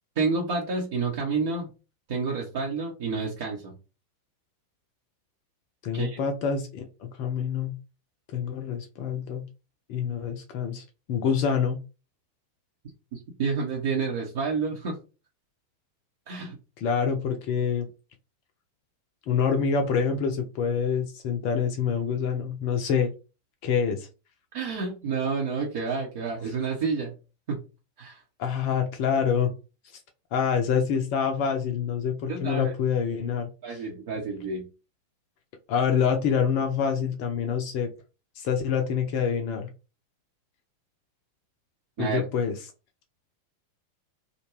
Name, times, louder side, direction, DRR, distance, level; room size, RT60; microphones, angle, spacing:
voice 1, 0.2-1.7 2.1-3.7 5.9-6.2 13.1-15.0 16.3-16.6 24.5-27.1 27.5-27.6 28.0-28.2 32.3-32.7 33.6-34.7 42.0-42.2, right 4 dB, 50° right, -2 dB, 0.8 m, -29 dB
voice 2, 5.8-7.7 8.3-9.4 9.9-11.8 16.8-17.9 19.3-23.1 23.6-24.1 28.4-29.5 30.3-33.5 35.7-37.9 38.4-39.7 42.0-42.6, left 7 dB, 45° left, 4 dB, 0.5 m, -26 dB
2.4 x 2.2 x 3.1 m, 0.31 s
figure-of-eight pair, 90°, 0 cm